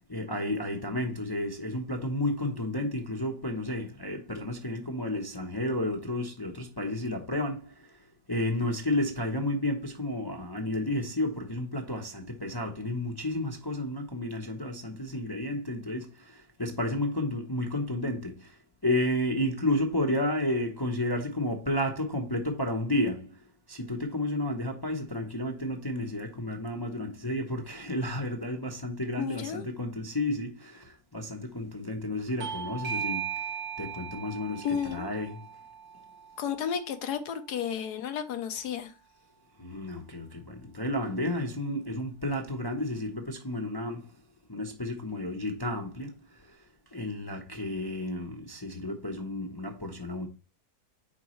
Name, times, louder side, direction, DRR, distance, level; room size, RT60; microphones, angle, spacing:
voice 1, 0.1-7.6 8.3-16.1 16.6-18.3 18.8-23.3 23.7-33.2 33.8-34.6 34.9-35.4 39.6-44.0 44.5-46.1 46.9-50.3, left 1 dB, 20° left, 0.7 m, -31 dB
voice 2, 29.2-29.6 34.6-35.1 36.4-38.9, left 8 dB, 75° left, 1.4 m, -32 dB
Bell / Doorbell, 32.4-37.6, right 8 dB, 50° right, 1.0 m, -38 dB
8.2 x 5.2 x 3.1 m
omnidirectional pair, 1.7 m